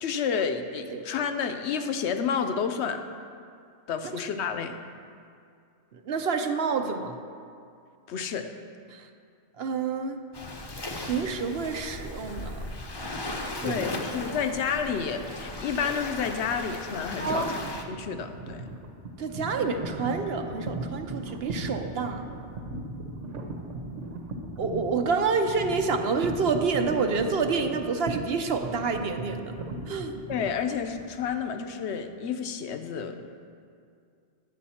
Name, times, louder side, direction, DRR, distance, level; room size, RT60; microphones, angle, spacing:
voice 1, 0.0-3.0 3.9-4.8 8.1-8.5 13.6-17.6 17.9-18.7 30.3-33.3, left 6 dB, 70° left, 8 dB, 0.9 m, -30 dB
voice 2, 6.0-7.1 8.9-9.1 9.6-10.2 11.0-12.6 13.4-13.8 14.3-14.4 17.2-17.6 19.2-22.2 24.6-29.6 29.9-30.1, right 5 dB, 60° right, 6 dB, 0.9 m, -28 dB
Waves surf, 10.3-17.8, left 2 dB, 25° left, 0.6 m, -37 dB
sound 1, 17.3-31.4, right 2 dB, 85° right, 1.3 m, -37 dB
11.0 x 8.5 x 4.2 m, 2.3 s
omnidirectional pair, 1.2 m